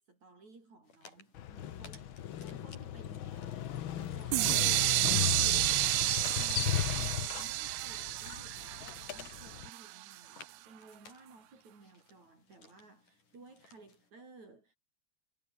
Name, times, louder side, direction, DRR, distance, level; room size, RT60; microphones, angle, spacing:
voice 1, 0.0-14.8, right 3 dB, 60° right, 8.4 m, -56 dB
sound 1, 0.8-14.1, left 4 dB, 80° left, 8.5 m, -61 dB
Motorcycle, 1.3-9.7, left 11 dB, 65° left, 1.3 m, -37 dB
sound 2, 4.3-10.1, right 19 dB, 80° right, 1.9 m, -31 dB
omnidirectional pair, 3.6 m